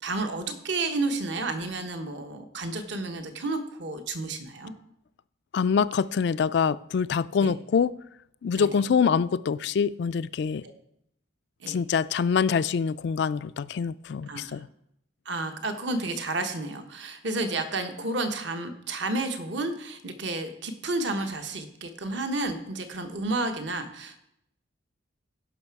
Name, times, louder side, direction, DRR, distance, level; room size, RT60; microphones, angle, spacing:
voice 1, 0.0-4.7 7.4-7.5 8.6-8.7 11.6-11.8 14.3-14.6 15.2-24.2, right 2 dB, 60° right, 1.1 m, -31 dB
voice 2, 5.5-7.9 8.4-10.6 11.7-14.7, left 6 dB, 55° left, 0.3 m, -25 dB
16.0 x 5.8 x 4.7 m
head